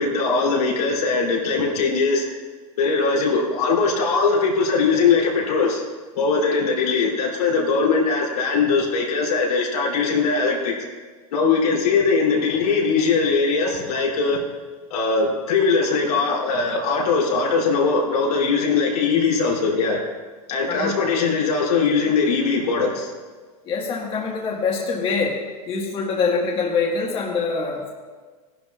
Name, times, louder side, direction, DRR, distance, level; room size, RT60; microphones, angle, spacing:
voice 1, 0.0-2.2 2.8-5.8 6.1-10.7 11.3-14.4 14.9-20.0 20.5-23.1, left 4 dB, 85° left, -3 dB, 3.1 m, -20 dB
voice 2, 23.6-25.4 25.6-27.9, left 4 dB, 30° left, -2 dB, 1.6 m, -24 dB
16.0 x 11.5 x 2.4 m, 1.4 s
supercardioid pair, 140°, 19 cm